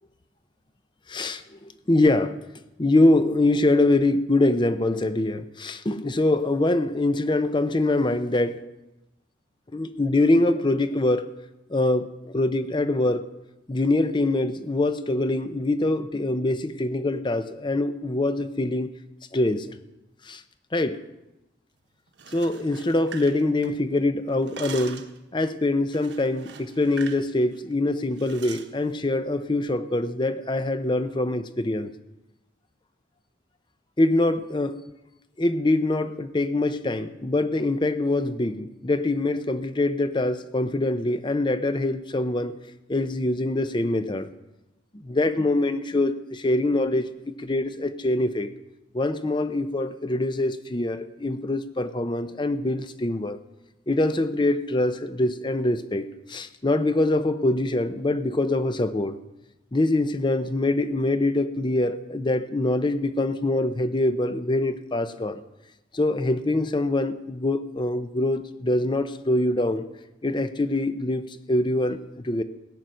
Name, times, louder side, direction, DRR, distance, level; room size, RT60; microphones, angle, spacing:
voice 1, 1.1-2.4 2.8-8.6 9.7-11.3 11.7-13.3 13.7-18.9 19.3-19.7 20.2-20.4 20.7-21.0 22.3-25.1 25.3-31.9 34.0-34.8 35.4-42.6 42.9-44.3 45.0-48.5 48.9-53.4 53.9-59.2 59.7-65.4 65.9-69.8 70.2-72.4, left 2 dB, 25° left, 11 dB, 0.6 m, -24 dB
sound 1, 22.1-24.0 24.3-25.2 25.9-27.3 27.5-27.7 28.2-28.7, right 6 dB, 60° right, 1.2 m, -42 dB
16.5 x 9.2 x 6.3 m, 0.96 s
head